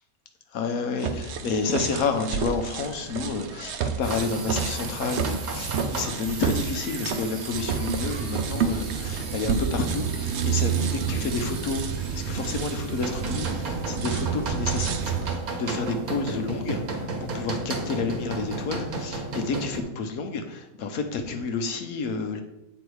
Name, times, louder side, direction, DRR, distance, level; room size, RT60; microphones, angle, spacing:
voice 1, 0.5-22.4, left 4 dB, 75° left, 6 dB, 1.3 m, -30 dB
sound 1, 1.0-15.4, right 7 dB, 60° right, 0.8 m, -29 dB
sound 2, 4.0-19.8, right 2 dB, 80° right, 1.7 m, -35 dB
8.0 x 4.0 x 4.7 m, 0.90 s
omnidirectional pair, 1.5 m